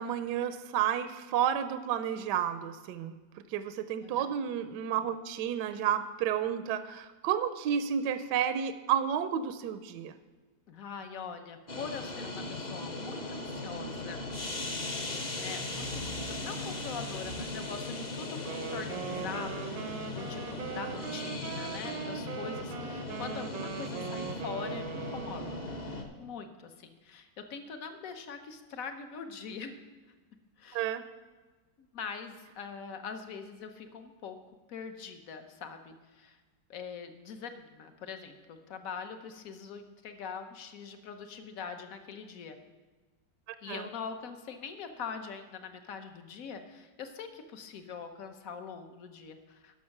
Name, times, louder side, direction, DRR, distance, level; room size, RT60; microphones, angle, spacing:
voice 1, 0.0-3.2 3.5-10.1 30.7-31.0 43.7-43.9, right 9 dB, 75° right, 11 dB, 1.1 m, -31 dB
voice 2, 10.7-14.2 15.1-25.6 26.2-29.8 30.6-30.8 31.8-34.4 34.7-36.4 36.7-42.6 43.6-49.8, left 6 dB, 55° left, 7 dB, 1.0 m, -43 dB
sound 1, 11.7-26.0, left 2 dB, 35° left, 0.8 m, -38 dB
Race car auto racing, 13.6-17.8, equal, 90° left, 4.0 m, -47 dB
Wind instrument woodwind instrument, 18.4-25.6, right 9 dB, 90° right, 1.5 m, -41 dB
12.0 x 6.3 x 5.9 m, 1.3 s
omnidirectional pair, 2.1 m